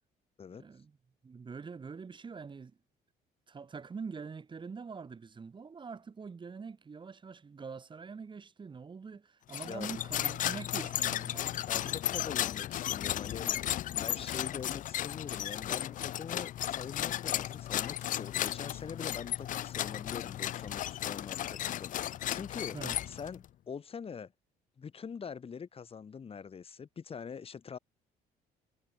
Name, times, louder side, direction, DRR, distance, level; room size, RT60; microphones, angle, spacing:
voice 1, 0.5-1.0 1.2-2.8 3.5-12.0 22.7-23.0, right 5 dB, 30° right, 3.0 m, -44 dB
sound 1, 9.5-23.4, left 12 dB, 50° left, 0.5 m, -35 dB
voice 2, 9.6-9.9 11.7-22.8 23.1-24.3 24.8-27.8, left 6 dB, 35° left, 3.8 m, -44 dB
cardioid pair, 110°, 17 cm